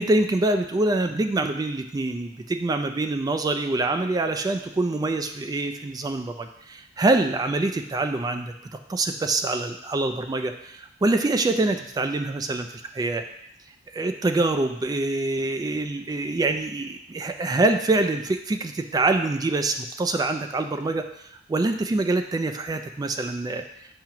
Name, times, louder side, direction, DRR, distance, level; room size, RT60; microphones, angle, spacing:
voice 1, 0.0-8.5 8.9-12.7 12.9-13.2 13.9-21.1 21.5-23.6, right 2 dB, 20° right, 7 dB, 0.3 m, -25 dB
7.3 x 2.9 x 5.7 m, 0.76 s
head